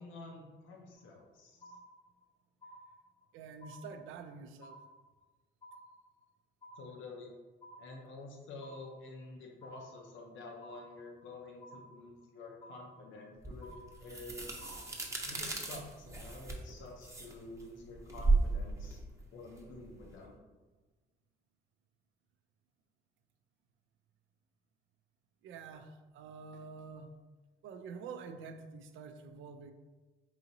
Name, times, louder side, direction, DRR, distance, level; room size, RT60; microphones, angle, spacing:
voice 1, 0.0-1.5 6.8-7.3 7.8-13.7 14.0-14.5 15.2-19.0 19.3-20.3, left 2 dB, 75° left, 1 dB, 0.7 m, -49 dB
sound 1, 1.0-1.3 1.6-2.3 2.6-3.3 3.6-4.3 4.6-5.3 5.6-6.3 6.6-7.3 7.6-8.3 8.6-9.3 9.6-10.3 10.6-11.3 11.6-12.3 12.6-13.3 13.6-14.3 14.6-15.3, right 1 dB, 25° left, 0.5 m, -55 dB
voice 2, 3.3-4.8 25.4-27.1 27.6-29.7, right 5 dB, 80° right, 7 dB, 0.4 m, -47 dB
sound 2, 13.4-20.2, right 3 dB, 15° right, 0.7 m, -35 dB
4.8 x 2.9 x 2.7 m, 1.3 s
cardioid pair, 90°, 20 cm